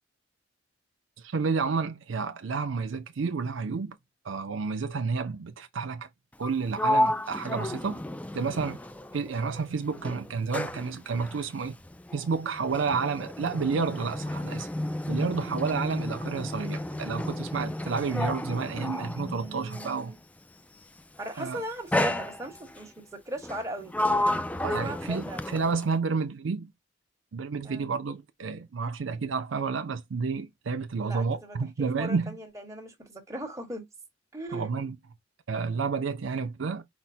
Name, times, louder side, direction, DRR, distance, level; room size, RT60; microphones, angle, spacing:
voice 1, 1.2-3.9 4.2-6.1 6.4-8.0 8.3-8.8 9.1-11.8 12.1-14.7 15.1-20.1 21.4-21.6 24.6-26.7 27.3-32.3 34.5-35.0 35.5-36.8, right 5 dB, 75° right, 0.5 m, -30 dB
Sliding door, 6.3-9.6 9.9-20.1 21.0-21.3 21.9-22.8 23.4-26.0, left 1 dB, 5° left, 0.3 m, -32 dB
voice 2, 19.2-20.2 21.2-24.0 24.8-25.5 27.6-27.9 31.0-33.8 34.3-34.7, right 1 dB, 15° right, 1.2 m, -38 dB
5.1 x 2.1 x 4.2 m
head